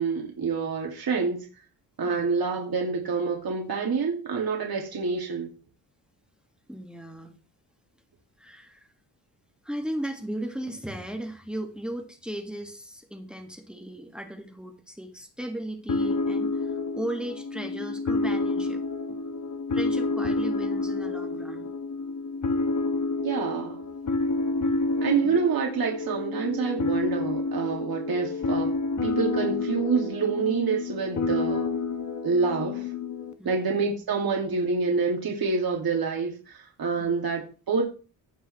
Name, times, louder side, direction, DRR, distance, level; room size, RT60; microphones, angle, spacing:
voice 1, 0.0-1.4 2.0-5.5 23.2-23.8 25.0-28.7 29.0-31.7 32.2-32.9 33.4-37.8, right 5 dB, 60° right, 2.4 m, -27 dB
voice 2, 6.7-7.4 8.4-8.9 9.6-18.8 19.7-21.7 25.2-25.3 33.4-33.7 37.0-37.1, right 1 dB, ahead, 1.8 m, -36 dB
sound 1, 15.9-33.3, left 3 dB, 45° left, 1.1 m, -29 dB
16.5 x 5.5 x 3.2 m
cardioid pair, 85°, 41 cm